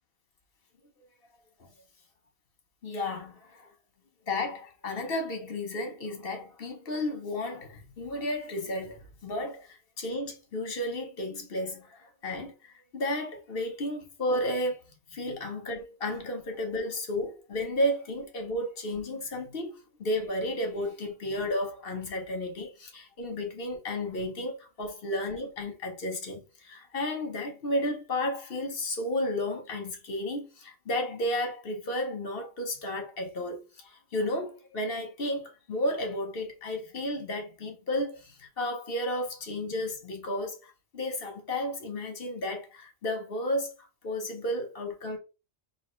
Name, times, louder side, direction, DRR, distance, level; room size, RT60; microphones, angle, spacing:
voice 1, 2.8-3.7 4.3-43.7 44.0-45.2, left 1 dB, 65° left, 1.3 m, -33 dB
5.4 x 2.8 x 3.1 m
omnidirectional pair, 1.1 m